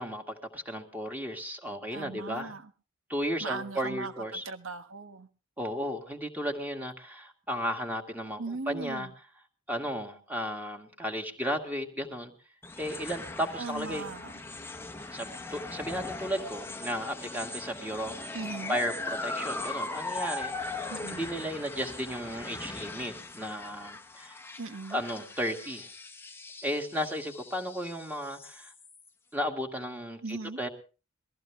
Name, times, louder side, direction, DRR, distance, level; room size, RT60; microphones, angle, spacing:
voice 1, 0.0-2.5 3.1-4.4 5.6-8.4 8.7-9.1 9.7-12.3 12.8-14.1 15.1-18.1 18.7-24.3 24.9-25.9 26.6-28.7 29.3-30.7, equal, 10° right, 2.0 m, -34 dB
voice 2, 1.9-2.7 3.4-5.3 8.4-9.1 13.6-14.3 18.3-18.8 20.9-21.3 24.6-25.0 30.2-30.6, right 3 dB, 85° right, 1.4 m, -39 dB
sound 1, 12.6-29.1, left 2 dB, 10° left, 0.8 m, -40 dB
22.0 x 15.0 x 3.4 m
head